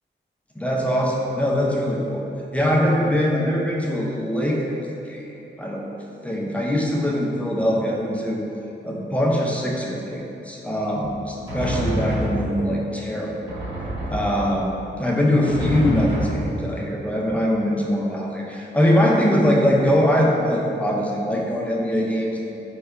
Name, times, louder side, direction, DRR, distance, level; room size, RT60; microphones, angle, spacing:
voice 1, 0.6-2.2 2.5-4.8 5.1-5.2 5.6-5.9 6.2-8.4 8.8-13.6 14.1-22.4, equal, 5° left, -3 dB, 0.5 m, -22 dB
Drum, 11.0-12.9 13.5-14.8 15.5-17.0, right 1 dB, 25° right, 1.2 m, -28 dB
4.7 x 2.2 x 2.2 m, 2.9 s
cardioid pair, 55°, 20 cm